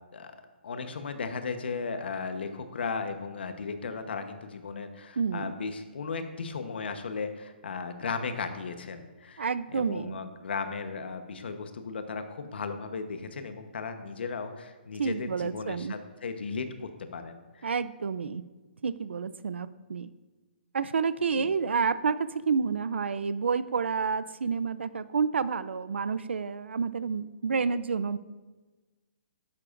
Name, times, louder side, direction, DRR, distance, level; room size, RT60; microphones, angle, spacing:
voice 1, 0.6-9.5 9.7-17.7 21.3-21.5, left 5 dB, 65° left, 8 dB, 1.0 m, -36 dB
voice 2, 5.2-5.5 9.4-10.1 15.0-16.0 17.6-18.4 18.8-20.1 20.7-28.2, right 5 dB, 85° right, 15 dB, 0.5 m, -29 dB
12.0 x 9.8 x 2.6 m, 1.3 s
hypercardioid pair, 165°, 6 cm